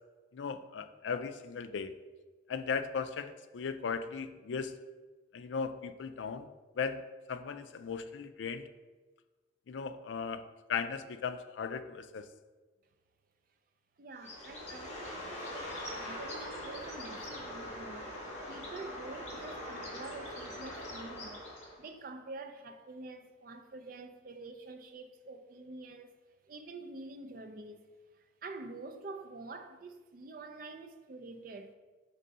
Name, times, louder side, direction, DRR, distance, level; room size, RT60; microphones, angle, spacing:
voice 1, 0.3-1.9 2.5-4.8 5.3-6.5 6.8-7.0 7.3-8.7 9.7-10.4 10.7-12.3, left 5 dB, 75° left, 0.4 m, -37 dB
voice 2, 14.0-18.2 18.5-21.5 21.8-26.2 26.4-27.8 28.1-31.7, right 3 dB, 50° right, 0.4 m, -47 dB
Bird, 14.2-21.9, left 1 dB, 35° left, 1.6 m, -42 dB
5.5 x 3.7 x 5.3 m
head